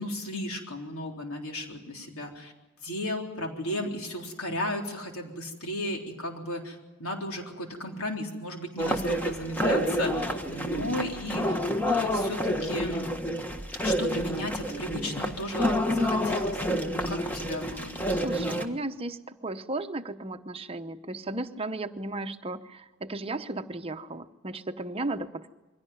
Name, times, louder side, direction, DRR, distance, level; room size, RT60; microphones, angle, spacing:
voice 1, 0.0-2.5 2.8-11.6 11.9-13.1 13.8-16.7 16.9-18.0, left 1 dB, 80° left, 2 dB, 3.8 m, -35 dB
sound 1, 8.8-18.6, equal, 10° left, 1.4 m, -28 dB
voice 2, 18.1-25.5, right 2 dB, 25° right, 8 dB, 0.9 m, -35 dB
23.0 x 17.0 x 9.4 m, 1.1 s
head